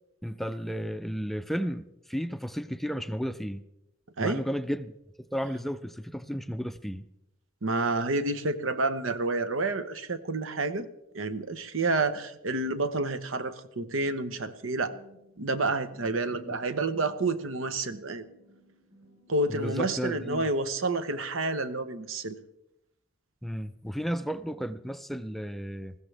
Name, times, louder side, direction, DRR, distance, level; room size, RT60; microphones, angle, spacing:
voice 1, 0.2-3.6 4.2-4.9 5.3-7.0 16.3-16.6 19.5-20.5 23.4-26.0, equal, ahead, 0.4 m, -33 dB
voice 2, 7.6-10.9 11.1-14.9 15.4-18.2 19.3-22.4, right 2 dB, 85° right, 1.0 m, -29 dB
sound 1, 14.8-20.8, right 1 dB, 35° right, 3.8 m, -59 dB
20.5 x 15.5 x 3.4 m
head